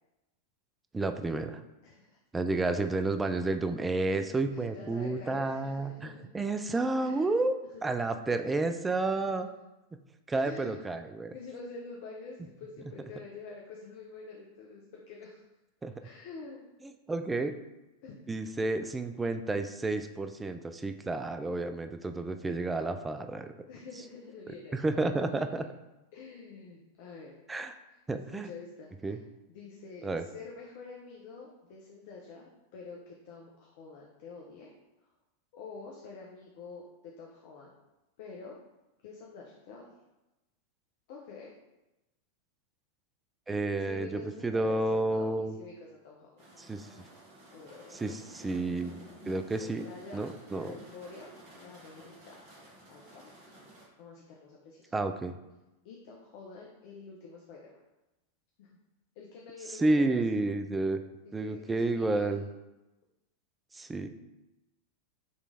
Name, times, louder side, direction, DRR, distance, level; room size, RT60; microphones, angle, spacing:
voice 1, 0.9-1.6 2.3-7.5 7.8-9.5 10.3-11.3 15.8-15.9 16.8-17.6 18.3-23.5 24.7-25.7 27.5-27.7 28.1-28.5 29.0-29.2 30.0-30.2 43.5-45.5 46.6-46.9 47.9-49.0 49.3-49.9 50.1-50.7 54.9-55.4 59.8-61.0 61.3-62.4 63.7-64.1, right 2 dB, 10° right, 7 dB, 0.3 m, -30 dB
voice 2, 1.8-2.2 4.1-6.3 7.0-7.3 7.7-8.0 8.6-8.8 10.4-10.9 11.3-15.4 16.0-16.7 18.0-18.3 23.7-25.7 26.1-27.4 28.1-29.2 29.5-34.7 35.5-37.7 38.2-38.6 39.0-39.8 41.1-41.5 43.8-46.4 47.5-48.2 49.6-52.4 52.9-53.3 54.0-54.9 55.8-57.8 58.6-58.7 59.2-60.2 61.4-62.3, left 4 dB, 50° left, -2 dB, 0.6 m, -47 dB
sound 1, 46.4-53.9, right 1 dB, 45° right, 1.2 m, -53 dB
5.2 x 3.1 x 2.6 m, 1.0 s
figure-of-eight pair, 90°, 0 cm